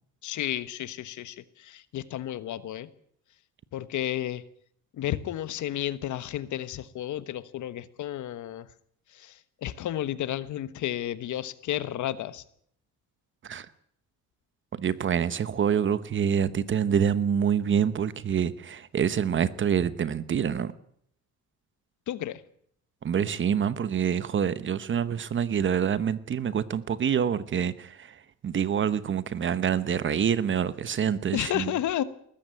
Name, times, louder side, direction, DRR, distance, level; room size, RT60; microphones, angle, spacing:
voice 1, 0.2-2.9 3.7-4.4 4.9-8.7 9.1-12.4 22.1-22.4 31.3-32.0, left 12 dB, 65° left, 1.3 m, -32 dB
voice 2, 14.8-20.7 23.0-31.7, right 8 dB, 40° right, 1.0 m, -26 dB
20.0 x 14.5 x 9.1 m
cardioid pair, 140°, 32 cm